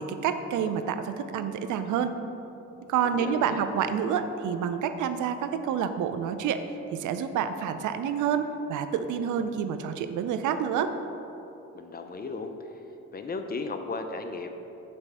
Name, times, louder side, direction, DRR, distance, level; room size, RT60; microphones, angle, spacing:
voice 1, 0.0-2.1 2.9-6.6 6.9-10.9, right 7 dB, 80° right, 9 dB, 0.6 m, -28 dB
voice 2, 3.1-3.6 11.7-12.5 13.1-14.5, left 3 dB, 30° left, 6 dB, 0.6 m, -35 dB
9.5 x 3.3 x 6.1 m, 3.0 s
cardioid pair, 90°, 30 cm